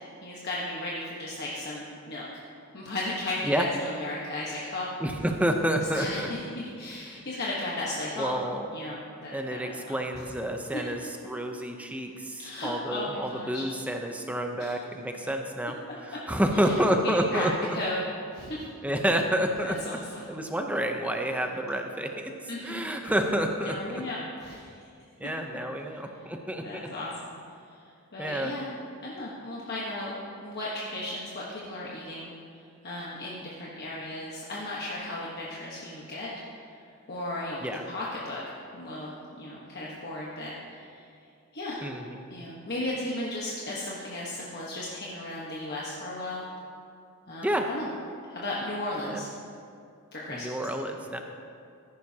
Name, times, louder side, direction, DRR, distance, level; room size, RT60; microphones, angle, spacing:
voice 1, 0.2-2.2 2.7-4.9 5.9-8.4 8.7-9.9 12.4-13.6 14.6-14.7 16.5-16.8 17.0-17.5 17.7-18.0 18.3-18.7 19.6-20.2 22.5-22.8 23.6-24.7 26.6-27.4 27.7-28.7 29.0-30.1 30.4-32.3 32.8-36.3 37.1-41.1 41.5-41.8 42.3-46.5 47.3-47.9 48.2-49.3 50.1-50.5, left 1 dB, 45° left, -6 dB, 1.2 m, -35 dB
voice 2, 5.0-6.3 7.1-7.2 8.2-8.7 9.3-15.8 16.0-17.5 18.8-20.0 20.3-22.3 22.6-24.0 25.2-26.8 28.2-28.5 37.6-37.8 41.8-42.2 47.4-47.7 49.0-49.2 50.3-51.2, right 1 dB, 5° right, 4 dB, 0.6 m, -29 dB
14.5 x 10.5 x 2.8 m, 2.4 s
head